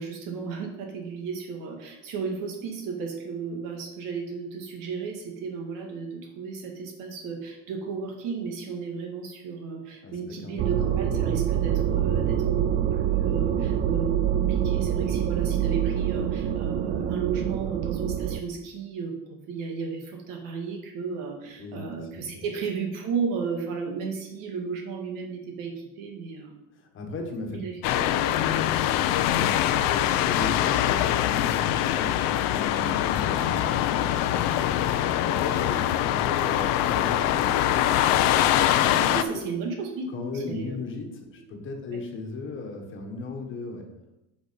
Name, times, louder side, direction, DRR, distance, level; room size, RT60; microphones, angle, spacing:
voice 1, 0.0-26.6 27.5-27.7 28.2-28.4 39.1-40.0 40.5-40.8 41.9-42.0, right 5 dB, 75° right, 3 dB, 2.0 m, -34 dB
voice 2, 10.0-10.8 21.5-21.9 22.1-22.4 26.8-28.0 28.4-28.7 29.0-34.7 35.2-38.0 38.9-39.4 40.1-43.9, left 3 dB, 35° left, 3 dB, 1.4 m, -37 dB
sound 1, 10.6-18.4, right 10 dB, 35° right, 0.4 m, -25 dB
sound 2, 27.8-39.2, left 12 dB, 75° left, 0.7 m, -23 dB
8.7 x 5.3 x 5.2 m, 0.93 s
cardioid pair, 165°, 33 cm